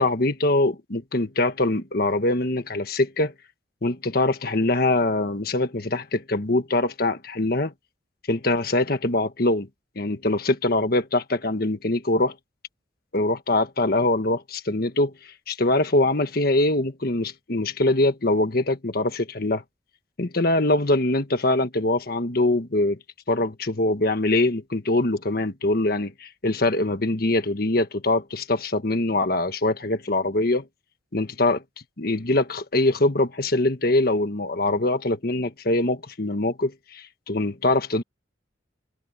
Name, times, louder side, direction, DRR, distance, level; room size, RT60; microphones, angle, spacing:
voice 1, 0.0-3.3 3.8-7.7 8.3-9.7 9.9-12.3 13.1-19.6 20.2-23.0 23.3-30.6 31.1-31.6 32.0-38.0, left 2 dB, 55° left, 1.5 m, -23 dB
head